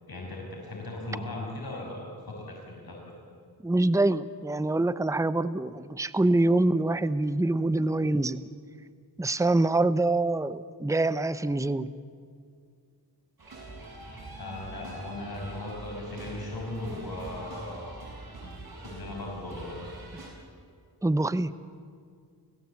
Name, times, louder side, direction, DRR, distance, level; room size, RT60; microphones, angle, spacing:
voice 1, 0.1-3.0 14.4-18.0 18.4-18.5 18.8-20.0, left 2 dB, 65° left, -1 dB, 5.9 m, -38 dB
voice 2, 3.6-8.4 9.2-11.9 21.0-21.5, right 2 dB, 10° right, 14 dB, 0.7 m, -25 dB
sound 1, 13.4-20.3, right 2 dB, 60° right, 7.0 m, -43 dB
30.0 x 15.5 x 8.4 m, 2.2 s
cardioid pair, 60°, 40 cm